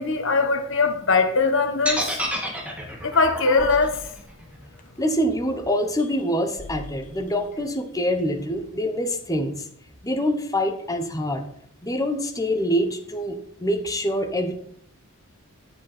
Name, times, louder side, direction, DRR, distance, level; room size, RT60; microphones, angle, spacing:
voice 1, 0.0-2.1 3.0-4.1, left 4 dB, 60° left, 1.2 m, -21 dB
sound 1, 1.9-5.9, equal, 5° right, 1.9 m, -30 dB
sound 2, 2.4-2.5 3.6-5.2 6.0-6.3 6.6-8.8, left 1 dB, 35° left, 1.1 m, -43 dB
voice 2, 5.0-9.5 10.0-11.4 11.8-14.5, equal, 15° left, 1.1 m, -25 dB
10.5 x 8.3 x 4.4 m
head